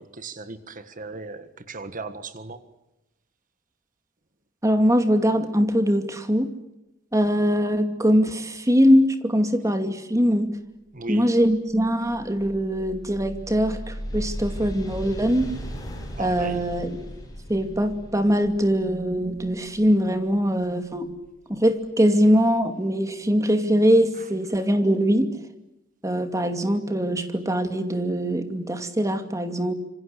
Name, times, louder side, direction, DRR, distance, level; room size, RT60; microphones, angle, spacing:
voice 1, 0.0-2.6 10.9-11.3 16.2-16.6 24.2-24.3, right 3 dB, 40° right, 11 dB, 1.6 m, -36 dB
voice 2, 4.6-6.5 7.1-10.5 11.1-15.5 16.2-17.1 17.5-21.1 21.5-25.3 26.0-29.7, equal, 15° right, 7 dB, 2.5 m, -22 dB
sound 1, 10.9-21.7, equal, 20° left, 7.2 m, -38 dB
27.0 x 25.0 x 8.3 m, 0.95 s
head